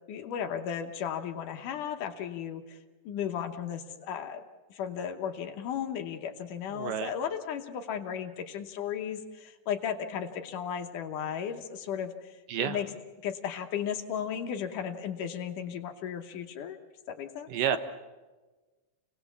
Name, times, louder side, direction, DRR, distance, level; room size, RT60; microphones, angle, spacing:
voice 1, 0.1-2.8 3.1-4.4 4.7-12.9 13.2-16.8 17.1-17.5, left 8 dB, 65° left, 5 dB, 2.3 m, -35 dB
voice 2, 6.7-7.1 12.5-12.8 17.5-17.8, right 9 dB, 70° right, 9 dB, 2.4 m, -30 dB
28.5 x 19.0 x 7.1 m, 1.2 s
omnidirectional pair, 4.5 m